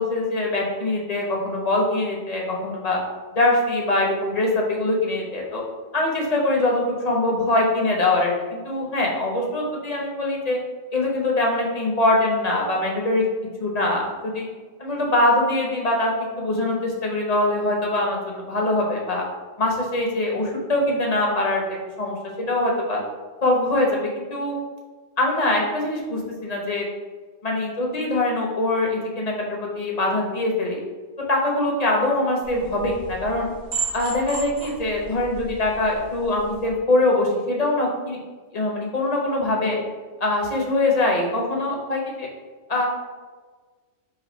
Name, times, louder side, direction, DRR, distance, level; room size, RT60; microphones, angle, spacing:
voice 1, 0.0-3.0 3.3-5.6 5.9-10.6 10.9-13.3 13.6-14.5 14.8-19.2 19.6-21.6 22.0-23.0 23.4-24.5 25.2-26.8 27.4-30.8 31.3-33.5 33.9-38.2 38.5-39.8 40.2-42.3 42.7-42.9, left 2 dB, 35° left, -1 dB, 0.9 m, -23 dB
sound 1, 32.4-36.7, right 4 dB, 50° right, 1.4 m, -35 dB
5.1 x 2.4 x 4.3 m, 1.4 s
omnidirectional pair, 1.3 m